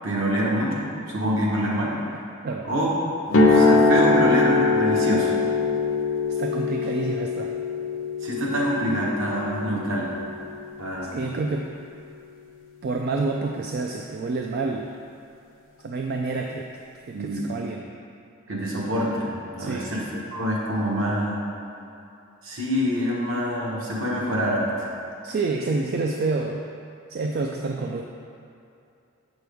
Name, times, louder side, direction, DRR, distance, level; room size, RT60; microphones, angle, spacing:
voice 1, 0.0-2.0 2.6-3.0 3.5-5.3 8.2-10.1 10.8-11.1 17.1-17.5 18.5-21.5 22.4-24.9, equal, 65° right, -4 dB, 1.3 m, -26 dB
sound 1, 3.3-11.3, left 3 dB, 65° left, 0.7 m, -22 dB
voice 2, 6.3-7.5 11.1-11.7 12.8-14.9 15.8-16.7 17.1-17.9 19.6-19.9 25.2-26.6 27.1-28.0, right 3 dB, 45° right, 2 dB, 0.3 m, -28 dB
7.5 x 6.1 x 3.5 m, 2.6 s
head